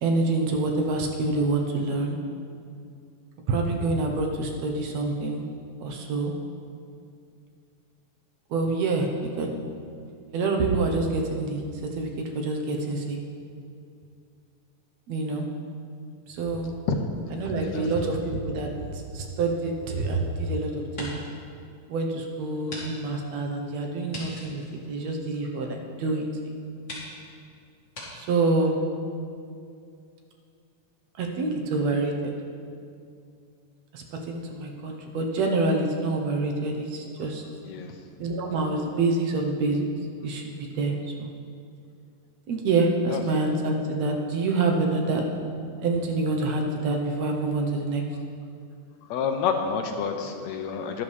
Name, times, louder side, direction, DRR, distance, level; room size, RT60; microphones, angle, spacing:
voice 1, 0.0-2.2 3.5-5.4 5.8-6.3 8.5-9.1 9.4-9.5 10.3-11.6 12.0-12.1 12.3-13.2 15.1-15.5 16.3-16.7 17.4-21.2 21.9-24.6 24.9-26.3 28.1-28.8 31.2-32.3 33.9-37.4 38.2-39.9 40.2-41.3 42.5-45.2 45.8-48.0, right 3 dB, 70° right, 2 dB, 2.1 m, -26 dB
voice 2, 17.6-18.1 37.6-38.0 43.1-43.2 49.0-51.0, left 6 dB, 75° left, 5 dB, 1.9 m, -29 dB
sound 1, 19.5-20.4 20.8-21.4 21.8-21.9 22.7-22.9 23.1-23.2 24.1-25.7 26.3-26.4 26.8-27.1 27.9-28.1, left 1 dB, 25° left, 2.5 m, -40 dB
12.5 x 11.5 x 3.3 m, 2.4 s
omnidirectional pair, 3.4 m